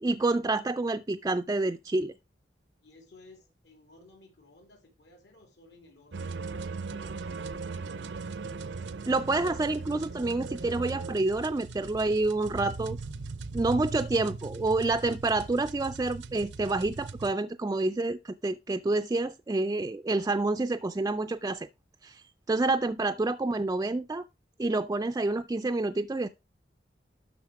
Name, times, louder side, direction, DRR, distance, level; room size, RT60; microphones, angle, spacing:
voice 1, 0.0-2.1 9.1-13.0 13.5-21.7 22.0-22.2 22.5-24.2 24.6-26.3, right 2 dB, 20° right, 0.4 m, -28 dB
voice 2, 2.8-8.1, left 2 dB, 75° left, 3.3 m, -57 dB
sound 1, 6.1-17.3, right 4 dB, 75° right, 0.6 m, -39 dB
12.0 x 4.2 x 4.7 m
head